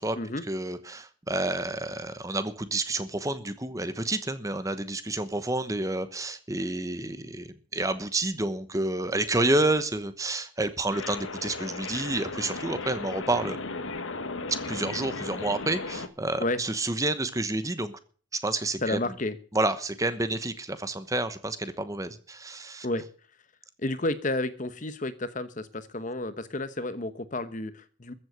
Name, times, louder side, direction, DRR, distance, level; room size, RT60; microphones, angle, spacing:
voice 1, 0.5-13.6 14.7-18.0 18.4-19.0 19.5-22.9, right 2 dB, 15° right, 12 dB, 1.0 m, -29 dB
sound 1, 10.9-16.1, left 3 dB, 75° left, 1.4 m, -36 dB
voice 2, 18.8-19.4 22.8-23.1 23.8-28.1, left 2 dB, 40° left, 13 dB, 1.0 m, -31 dB
14.5 x 7.8 x 8.1 m, 0.42 s
head